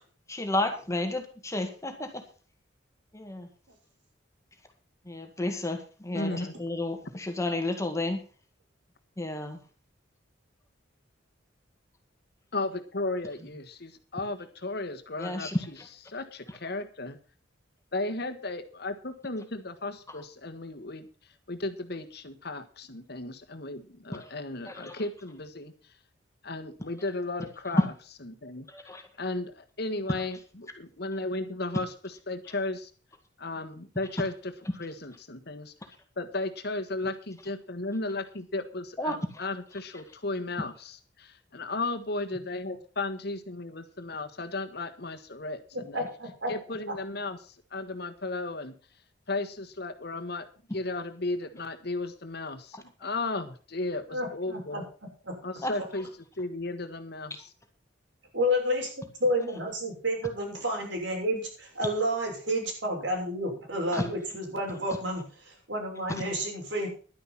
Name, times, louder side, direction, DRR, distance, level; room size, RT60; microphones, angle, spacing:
voice 1, 0.3-2.2 3.1-3.5 5.1-8.2 9.2-9.6 15.2-15.6 24.2-24.3 24.7-25.0 27.8-27.9 28.7-29.0 39.0-39.4 55.6-55.7 63.9-64.0, left 1 dB, 15° left, 5 dB, 1.8 m, -31 dB
voice 2, 6.1-6.5 12.5-15.8 16.1-17.2 17.9-21.1 21.5-25.7 26.4-27.9 28.2-28.7 29.2-32.9 33.4-35.7 36.2-46.0 46.5-48.7 49.3-50.5 50.7-54.8 55.4-56.1 56.4-57.5, left 2 dB, 60° left, 7 dB, 1.5 m, -35 dB
voice 3, 45.7-46.5 54.1-54.8 55.2-55.4 58.3-66.9, equal, 75° right, 0 dB, 6.5 m, -30 dB
11.5 x 9.9 x 5.9 m, 0.38 s
head